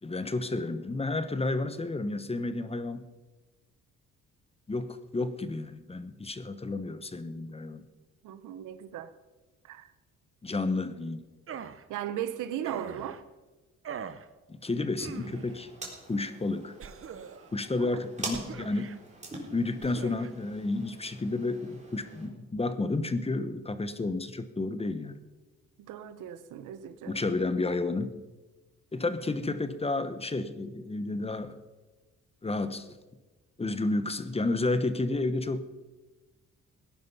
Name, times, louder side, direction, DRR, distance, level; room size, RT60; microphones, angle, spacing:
voice 1, 0.0-3.0 4.7-7.8 10.4-11.2 14.5-15.7 16.1-16.7 17.5-18.9 19.5-25.2 27.1-28.1 28.9-31.6 32.4-32.9 33.6-35.6, left 2 dB, 20° left, 1.1 m, -31 dB
voice 2, 8.2-9.1 9.6-9.9 11.9-13.2 17.8-17.9 25.8-27.2, right 10 dB, 85° right, 1.0 m, -37 dB
sound 1, 11.5-11.8 12.6-13.2 13.8-14.3 15.0-15.6 16.8-17.5 18.3-19.0 19.8-20.3, right 7 dB, 45° right, 0.9 m, -42 dB
sound 2, 15.0-22.3, right 2 dB, 25° right, 4.1 m, -44 dB
17.5 x 10.5 x 5.6 m
cardioid pair, 90°, 30 cm